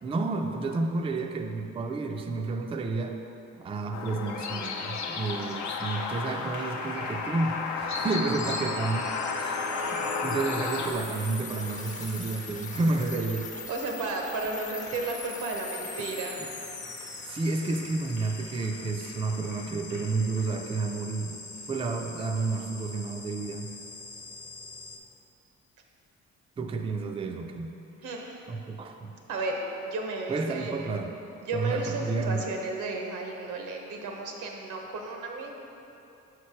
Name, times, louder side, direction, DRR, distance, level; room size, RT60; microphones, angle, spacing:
voice 1, 0.0-3.2 3.5-9.1 9.4-9.6 9.9-13.5 17.2-21.3 21.7-23.7 26.6-27.8 28.5-29.2 30.3-31.1 31.5-32.4, right 3 dB, 20° right, 3 dB, 0.3 m, -31 dB
sound 1, 3.9-10.9, left 4 dB, 70° left, 0.6 m, -32 dB
Applause, 5.1-22.9, left 2 dB, 90° left, 1.0 m, -48 dB
sound 2, 7.8-25.0, left 3 dB, 25° left, 0.6 m, -42 dB
voice 2, 13.7-16.4 28.0-28.4 29.3-30.9 31.4-35.5, right 3 dB, 85° right, 1 dB, 0.9 m, -33 dB
5.9 x 3.2 x 5.7 m, 2.9 s
cardioid pair, 90°, 30 cm